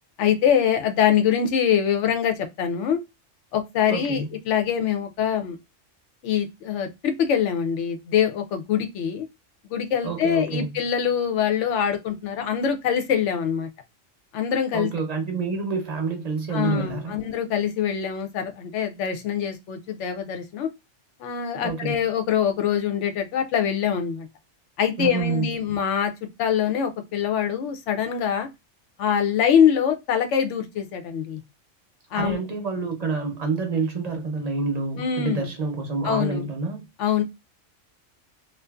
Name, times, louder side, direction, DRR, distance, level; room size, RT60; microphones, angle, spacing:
voice 1, 0.2-3.0 3.5-5.6 6.2-9.3 9.7-13.7 14.3-14.9 16.5-20.7 21.2-24.3 24.8-28.5 29.0-31.4 32.1-32.4 35.0-35.5 36.0-36.4 37.0-37.2, left 8 dB, 75° left, 0.9 m, -24 dB
voice 2, 3.9-4.3 10.0-10.8 14.7-17.2 21.6-22.0 25.0-25.5 32.1-36.8, right 4 dB, 40° right, 0.6 m, -28 dB
2.6 x 2.4 x 2.3 m
omnidirectional pair, 1.3 m